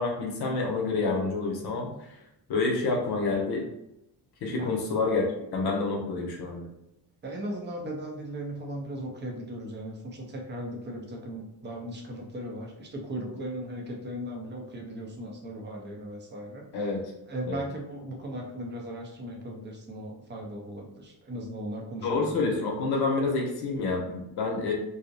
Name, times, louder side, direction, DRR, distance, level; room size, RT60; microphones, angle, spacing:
voice 1, 0.0-1.9 2.5-3.7 4.4-5.3 5.5-6.7 16.7-17.0 17.5-17.6 22.0-24.7, left 3 dB, 65° left, 0 dB, 0.7 m, -28 dB
voice 2, 7.2-16.7 17.3-22.4, right 1 dB, 25° right, 1 dB, 0.5 m, -37 dB
2.6 x 2.0 x 2.5 m, 0.84 s
cardioid pair, 145°, 41 cm